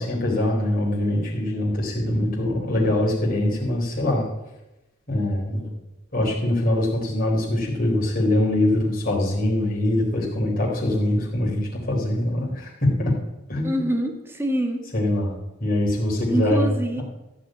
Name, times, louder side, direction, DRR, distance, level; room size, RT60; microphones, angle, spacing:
voice 1, 0.0-4.3 5.1-5.7 6.1-12.7 13.0-13.1 13.5-13.8 14.9-16.7 17.0-17.1, left 1 dB, 45° left, -3 dB, 3.9 m, -23 dB
voice 2, 13.6-14.8 16.3-17.0, right 1 dB, 10° right, 3 dB, 1.5 m, -25 dB
15.0 x 5.1 x 9.0 m, 1.0 s
head